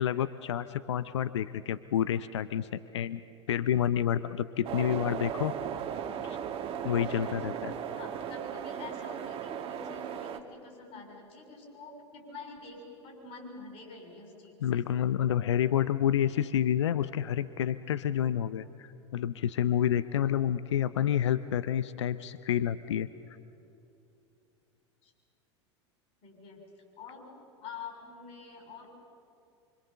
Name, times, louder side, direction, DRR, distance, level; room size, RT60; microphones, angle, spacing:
voice 1, 0.0-3.2 3.5-5.5 6.8-7.7 14.6-23.1, left 10 dB, 75° left, 14 dB, 0.6 m, -29 dB
sound 1, 4.6-10.4, right 9 dB, 40° right, 1.5 m, -36 dB
voice 2, 7.9-14.8 25.0-25.1 26.2-26.6 27.0-27.3 27.6-28.9, left 4 dB, 45° left, 1 dB, 6.7 m, -47 dB
25.5 x 25.0 x 6.9 m, 2.7 s
figure-of-eight pair, 85°, 15 cm